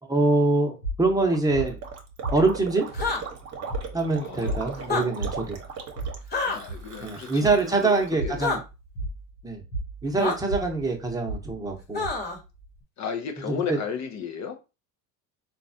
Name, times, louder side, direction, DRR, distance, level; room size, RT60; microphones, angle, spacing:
voice 1, 0.1-1.8 2.3-2.9 3.9-5.6 7.0-8.6 9.4-9.6 10.0-12.1 13.5-13.8, right 3 dB, 10° right, 1.0 m, -24 dB
sound 1, 0.8-12.8, right 2 dB, 75° left, 1.1 m, -36 dB
Gurgling, 1.2-8.1, right 5 dB, 35° right, 1.0 m, -39 dB
sound 2, 2.9-3.2 4.8-5.0 6.3-6.6 8.4-8.6 10.2-10.4 11.9-12.4, left 3 dB, 20° left, 1.2 m, -27 dB
voice 2, 4.2-4.9 6.4-8.5 13.0-14.6, left 7 dB, 35° left, 0.6 m, -34 dB
3.9 x 2.4 x 2.7 m
hypercardioid pair, 75°, 48 cm